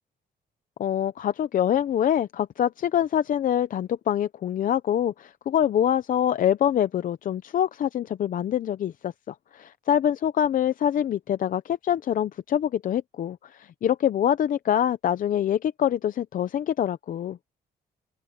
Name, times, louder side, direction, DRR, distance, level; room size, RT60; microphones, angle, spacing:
voice 1, 0.8-17.4, left 10 dB, 55° left, 0.7 m, -25 dB
open air
cardioid pair, 140°, 16 cm